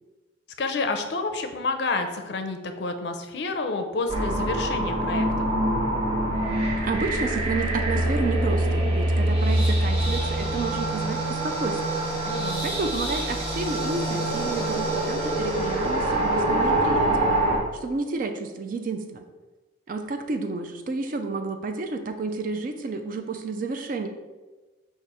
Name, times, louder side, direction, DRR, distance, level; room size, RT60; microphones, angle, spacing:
voice 1, 0.6-5.5 12.2-12.6, left 3 dB, 60° left, 6 dB, 0.4 m, -29 dB
sound 1, 4.1-17.6, right 1 dB, 30° right, 0.8 m, -25 dB
voice 2, 6.8-12.0 12.6-17.3 17.8-19.2 19.9-24.1, right 3 dB, 45° right, 6 dB, 0.4 m, -31 dB
sound 2, 13.7-18.7, equal, 5° left, 1.0 m, -47 dB
4.8 x 2.5 x 4.0 m, 1.2 s
head